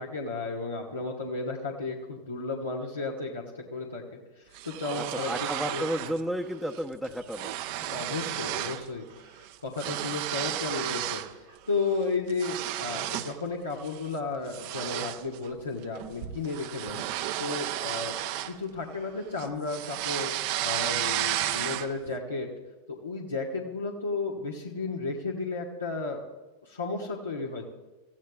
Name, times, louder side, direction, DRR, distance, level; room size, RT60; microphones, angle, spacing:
voice 1, 0.0-5.3 5.7-6.1 7.9-17.0 17.4-18.2 18.4-20.3 20.6-22.5 22.9-26.2 26.6-27.6, left 3 dB, 85° left, -3 dB, 1.6 m, -33 dB
sound 1, 4.5-6.2 6.5-6.8 7.0-8.9 9.2-11.3 11.8-13.4 13.8-14.1 14.5-19.0 19.4-22.1, right 14 dB, 55° right, 0.7 m, -33 dB
voice 2, 4.9-7.6, equal, ahead, -1 dB, 0.8 m, -32 dB
27.5 x 15.0 x 2.4 m, 1.1 s
figure-of-eight pair, 95°, 0 cm